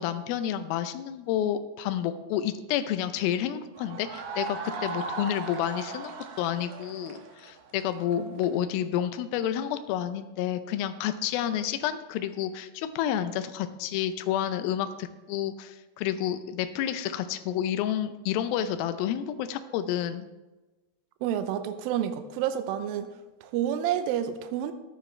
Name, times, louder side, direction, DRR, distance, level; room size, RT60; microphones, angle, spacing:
voice 1, 0.0-20.3, left 10 dB, 85° left, 10 dB, 2.1 m, -30 dB
sound 1, 3.8-8.5, right 4 dB, 65° right, 2.5 m, -37 dB
voice 2, 21.2-23.1 23.4-24.7, right 10 dB, 90° right, 9 dB, 2.0 m, -29 dB
14.0 x 10.0 x 3.2 m, 1.1 s
omnidirectional pair, 5.0 m